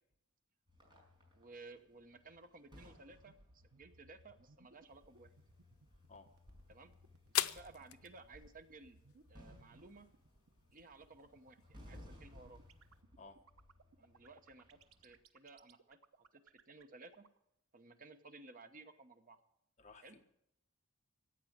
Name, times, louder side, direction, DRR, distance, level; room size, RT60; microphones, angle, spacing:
sound 1, 0.7-15.2, left 1 dB, 25° right, 5.3 m, -62 dB
voice 1, 1.3-5.3 6.7-6.9 7.3-9.0 9.3-10.1 10.7-12.6 14.0-17.3 17.7-19.4 20.0-20.2, right 3 dB, 40° right, 9 dB, 0.9 m, -57 dB
sound 2, 3.0-17.4, right 3 dB, 85° right, 1.0 m, -64 dB
sound 3, 4.9-13.0, left 12 dB, 85° left, 0.6 m, -46 dB
voice 2, 19.8-20.2, left 3 dB, 35° left, 4 dB, 1.4 m, -56 dB
14.5 x 9.1 x 7.3 m, 0.80 s
head